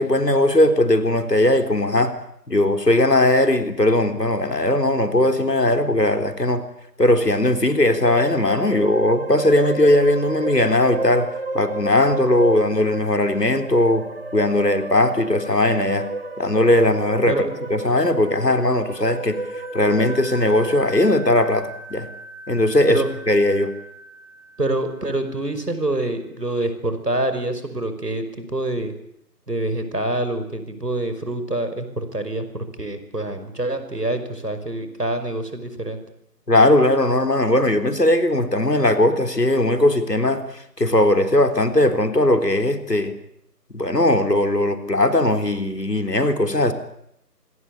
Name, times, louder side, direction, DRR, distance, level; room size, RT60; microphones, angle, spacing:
voice 1, 0.0-2.1 2.5-6.6 7.0-11.3 11.5-14.1 14.3-16.1 16.4-17.4 17.7-19.4 19.7-22.1 22.5-23.7 36.5-40.4 40.8-43.2 43.7-46.7, left 1 dB, 75° left, 8 dB, 3.8 m, -19 dB
sound 1, 7.3-20.9, right 2 dB, 35° right, 1.5 m, -32 dB
sound 2, 19.0-25.4, right 1 dB, 10° left, 3.4 m, -41 dB
voice 2, 24.6-28.9 29.5-36.0, right 1 dB, 70° right, 10 dB, 5.6 m, -26 dB
26.0 x 21.0 x 8.6 m, 0.73 s
figure-of-eight pair, 160°, 50 cm